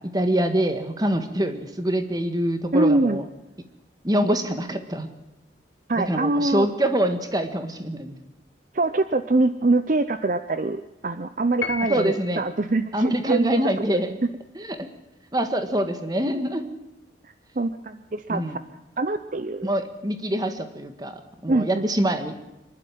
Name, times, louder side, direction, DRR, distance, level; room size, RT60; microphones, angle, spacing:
voice 1, 0.1-3.2 4.0-5.1 5.9-8.1 11.9-12.4 12.9-14.2 14.5-14.9 15.3-16.7 18.3-18.6 19.6-22.4, right 1 dB, 20° right, 8 dB, 1.6 m, -25 dB
voice 2, 2.7-3.2 5.9-6.7 8.7-13.6 17.2-18.6 19.0-19.7 21.5-21.8, right 2 dB, 45° right, 11 dB, 0.6 m, -24 dB
Piano, 11.6-12.5, left 6 dB, 80° left, 1.2 m, -32 dB
24.5 x 11.5 x 9.2 m, 0.97 s
head